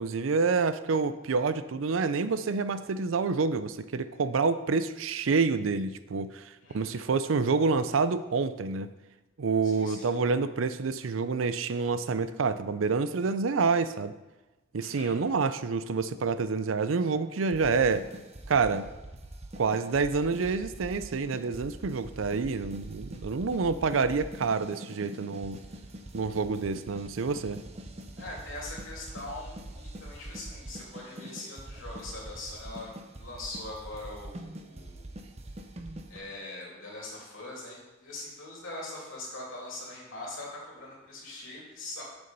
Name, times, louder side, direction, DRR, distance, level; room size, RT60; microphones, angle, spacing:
voice 1, 0.0-8.9 9.4-14.1 14.7-18.1 18.5-18.9 19.6-25.6 26.1-27.6, right 4 dB, 80° right, 12 dB, 0.5 m, -28 dB
voice 2, 6.6-7.1 9.6-10.1 14.8-15.2 28.2-35.1 36.1-42.0, left 2 dB, 80° left, -4 dB, 2.9 m, -42 dB
sound 1, 17.5-36.2, right 1 dB, 35° right, 0.8 m, -44 dB
7.0 x 6.8 x 5.3 m, 1.1 s
head